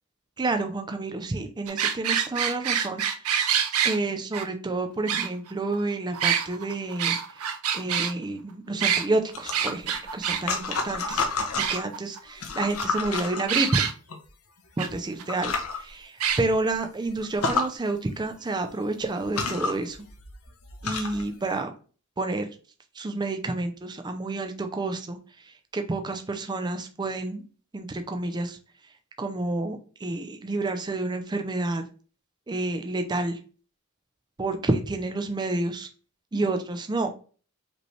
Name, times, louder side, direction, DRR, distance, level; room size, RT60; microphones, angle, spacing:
voice 1, 0.4-3.5 3.8-11.3 11.7-13.8 14.8-20.0 20.8-21.7 22.2-22.5 23.0-25.2 25.7-27.4 27.7-28.6 29.2-31.8 32.5-33.4 34.4-35.9 36.3-37.1, right 2 dB, 20° right, 6 dB, 0.4 m, -29 dB
sound 1, 1.7-4.0 4.3-4.4 5.1-5.7 6.1-8.1 8.8-9.0 9.5-10.4 10.7-10.8 11.1-11.2 11.6-12.2 13.5-13.9 14.8-14.9 15.2-15.3 16.2-16.4, right 8 dB, 80° right, 0.7 m, -26 dB
sound 2, 9.3-11.9 12.3-14.2 14.9-15.0 15.3-15.8 16.3-16.4 16.7-16.8 17.2-17.7 18.7-18.8 19.2-21.3, left 4 dB, 75° left, 0.9 m, -30 dB
5.0 x 3.2 x 3.1 m, 0.38 s
head